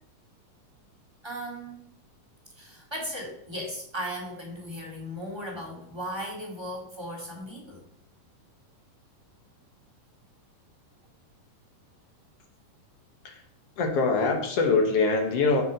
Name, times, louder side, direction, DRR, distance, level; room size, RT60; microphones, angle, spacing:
voice 1, 1.2-1.8 2.6-7.8, equal, 10° right, -2 dB, 1.7 m, -36 dB
voice 2, 13.8-15.6, left 4 dB, 60° left, 3 dB, 1.9 m, -23 dB
7.6 x 7.2 x 5.2 m, 0.69 s
omnidirectional pair, 3.7 m